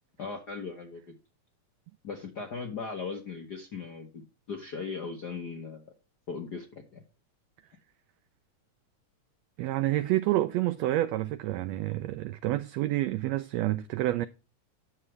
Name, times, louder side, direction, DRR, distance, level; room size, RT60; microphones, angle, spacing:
voice 1, 0.2-1.1 2.0-4.1 4.5-5.9 6.3-7.0, left 5 dB, 60° left, 1.0 m, -38 dB
voice 2, 9.6-14.3, right 15 dB, 90° right, 1.4 m, -28 dB
9.8 x 7.0 x 3.1 m
omnidirectional pair, 3.5 m